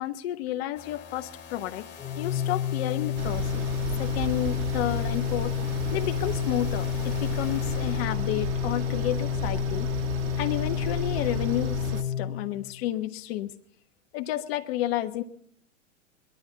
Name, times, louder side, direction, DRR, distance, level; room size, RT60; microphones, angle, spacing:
voice 1, 0.0-1.9 2.2-3.7 4.0-9.9 10.4-13.5 14.1-15.2, left 13 dB, 50° left, 8 dB, 1.4 m, -31 dB
sound 1, 0.7-8.3, left 7 dB, 25° left, 2.5 m, -46 dB
Organ, 2.0-12.9, left 10 dB, 10° left, 1.8 m, -30 dB
sound 2, 3.2-12.0, right 7 dB, 30° right, 1.6 m, -34 dB
22.5 x 12.0 x 4.0 m, 0.65 s
hypercardioid pair, 115°, 39 cm